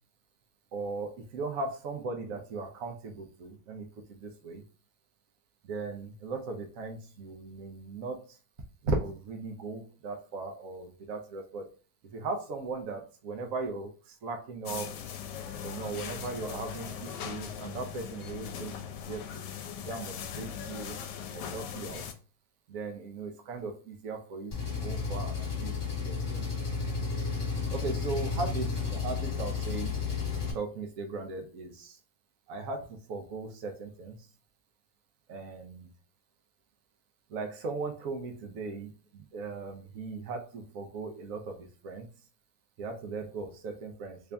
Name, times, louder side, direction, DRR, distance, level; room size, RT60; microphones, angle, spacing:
voice 1, 0.7-4.6 5.6-8.4 8.8-11.7 12.1-15.0 15.6-19.5 19.8-21.0 21.3-22.0 22.7-25.7 26.0-26.5 27.7-29.9 30.5-32.0 32.5-34.2 35.3-35.9 37.3-42.1 42.8-44.3, right 3 dB, 60° right, 3 dB, 1.1 m, -38 dB
sound 1, 14.7-22.1, left 8 dB, 80° left, 1.2 m, -40 dB
Engine, 24.5-30.5, left 5 dB, 25° left, 1.5 m, -32 dB
3.5 x 2.7 x 3.4 m, 0.38 s
omnidirectional pair, 1.9 m